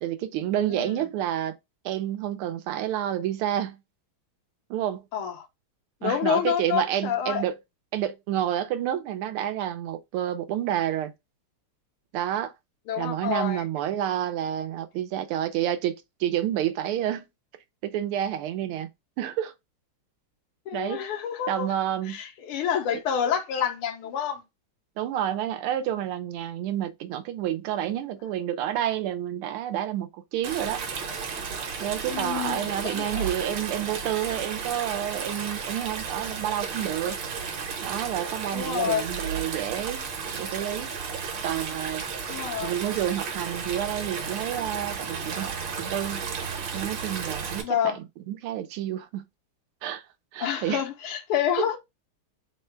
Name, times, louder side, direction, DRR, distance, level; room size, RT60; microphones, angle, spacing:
voice 1, 0.0-1.5 1.8-3.8 4.7-5.0 6.0-7.5 7.9-11.1 12.1-12.5 13.0-15.9 16.2-17.3 17.8-18.9 19.2-19.5 20.7-21.1 21.5-22.2 25.0-30.8 31.8-37.2 37.8-40.1 40.4-40.9 41.4-42.0 42.6-45.5 45.8-46.2 46.7-49.3 49.8-50.0 50.3-50.8, right 11 dB, 85° right, 1.5 m, -29 dB
voice 2, 0.7-1.1 5.1-5.4 6.0-7.4 12.9-13.6 20.7-21.7 22.1-24.4 32.1-33.3 38.5-39.1 42.3-42.7 47.6-48.0 50.4-51.8, left 8 dB, 85° left, 1.7 m, -28 dB
Stream, 30.4-47.6, right 5 dB, 65° right, 1.6 m, -33 dB
4.2 x 2.2 x 4.4 m
omnidirectional pair, 2.3 m